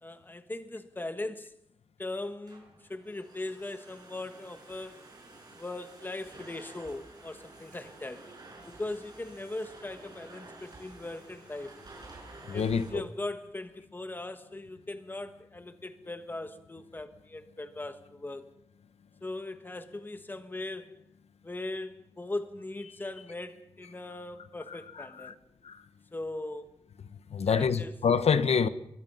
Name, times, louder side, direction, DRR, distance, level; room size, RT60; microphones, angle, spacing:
voice 1, 0.0-1.5 2.0-5.0 5.6-8.2 8.7-11.8 12.5-18.5 19.2-21.0 21.4-25.3 26.1-26.7 27.5-28.0, left 2 dB, 20° left, 1.4 m, -39 dB
Domestic sounds home sounds, 2.2-12.9, right 2 dB, 40° right, 5.8 m, -51 dB
voice 2, 12.5-13.0 25.2-25.3 25.6-25.8 27.3-28.7, left 6 dB, 80° left, 1.1 m, -26 dB
25.5 x 22.0 x 5.6 m
wide cardioid pair, 175°, 11 cm